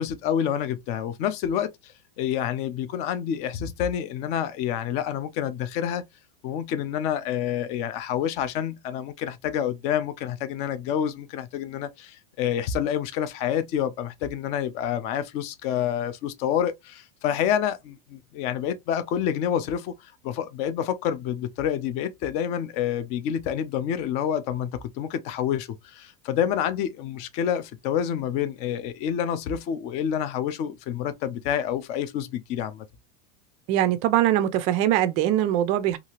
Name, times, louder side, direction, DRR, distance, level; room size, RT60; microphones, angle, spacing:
voice 1, 0.0-6.0 6.4-32.8, left 9 dB, 35° left, 0.4 m, -28 dB
voice 2, 33.7-36.0, right 12 dB, 35° right, 0.4 m, -22 dB
2.7 x 2.4 x 2.9 m
supercardioid pair, 165°, 20 cm